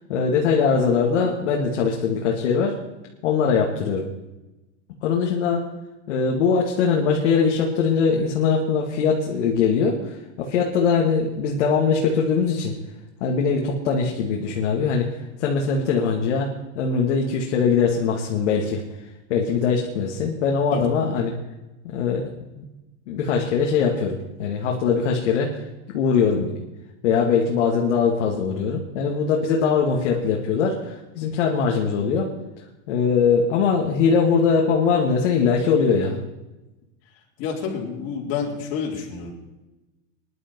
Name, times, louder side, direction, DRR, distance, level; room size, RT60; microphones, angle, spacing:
voice 1, 0.1-2.8 3.2-4.1 5.0-5.6 6.1-12.7 13.2-16.5 16.8-18.8 19.3-21.3 21.8-22.3 22.5-22.6 23.1-25.6 25.9-26.5 27.0-32.3 32.9-36.2, left 5 dB, 75° left, -1 dB, 2.3 m, -21 dB
voice 2, 37.4-39.3, left 6 dB, 45° left, -3 dB, 4.1 m, -29 dB
20.0 x 11.0 x 4.6 m, 1.0 s
supercardioid pair, 140°, 35 cm